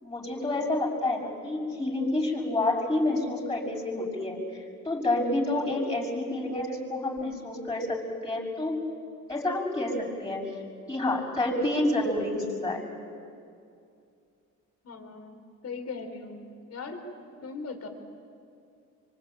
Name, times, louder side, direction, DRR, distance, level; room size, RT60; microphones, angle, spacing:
voice 1, 0.0-8.8 9.3-10.4 10.9-12.8, left 2 dB, 15° left, -7 dB, 6.2 m, -29 dB
voice 2, 14.8-17.1 17.4-17.9, left 4 dB, 55° left, 5 dB, 4.1 m, -39 dB
25.0 x 24.5 x 9.1 m, 2.5 s
cardioid pair, 90°, 30 cm